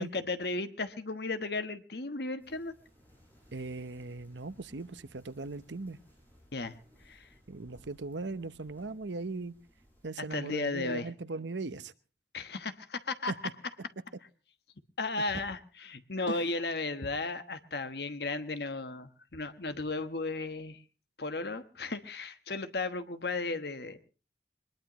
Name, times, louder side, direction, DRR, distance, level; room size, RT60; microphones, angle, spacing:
voice 1, 0.0-2.7 6.5-6.7 7.1-7.2 10.3-11.1 12.3-13.3 15.0-20.8 21.2-24.0, left 3 dB, 65° left, 1.2 m, -35 dB
sound 1, 2.4-10.1, equal, 10° left, 7.7 m, -62 dB
voice 2, 3.5-6.0 7.5-9.5 10.0-11.9 13.3-13.4 16.3-16.4, right 3 dB, 85° right, 0.9 m, -38 dB
22.0 x 21.0 x 3.0 m
head